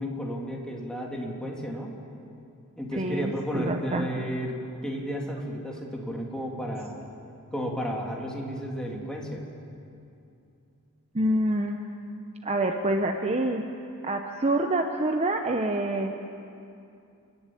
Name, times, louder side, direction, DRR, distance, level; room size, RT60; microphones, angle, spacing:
voice 1, 0.0-1.9 2.8-4.6 4.8-7.1 7.5-9.4, equal, 5° left, -1 dB, 2.5 m, -33 dB
voice 2, 3.0-4.2 11.1-11.8 12.4-13.7 14.0-16.1, right 1 dB, 30° right, 5 dB, 0.8 m, -27 dB
28.5 x 11.0 x 8.6 m, 2.6 s
head